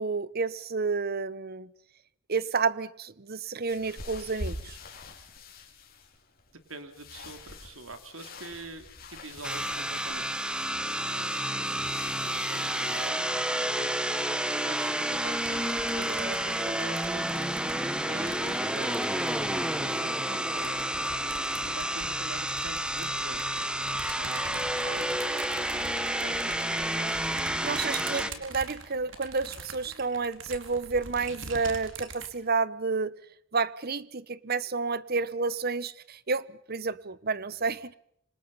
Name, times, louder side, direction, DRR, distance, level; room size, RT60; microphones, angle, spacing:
voice 1, 0.0-1.7 2.3-4.8 27.6-33.1 33.5-37.9, right 4 dB, 50° right, 1.0 m, -30 dB
sound 1, 3.7-13.1, left 2 dB, 50° left, 4.9 m, -45 dB
voice 2, 6.5-10.4 11.1-11.8 12.2-13.5 13.8-13.9 14.7-17.5 18.0-20.8 21.2-23.6 24.0-25.2 25.5-25.7 25.9-27.2 27.9-28.4, right 3 dB, 85° right, 3.5 m, -45 dB
sound 2, 9.4-28.3, right 1 dB, 5° right, 1.4 m, -30 dB
sound 3, 15.1-19.9 20.5-32.3, right 4 dB, 65° right, 4.4 m, -44 dB
28.0 x 26.0 x 5.7 m
head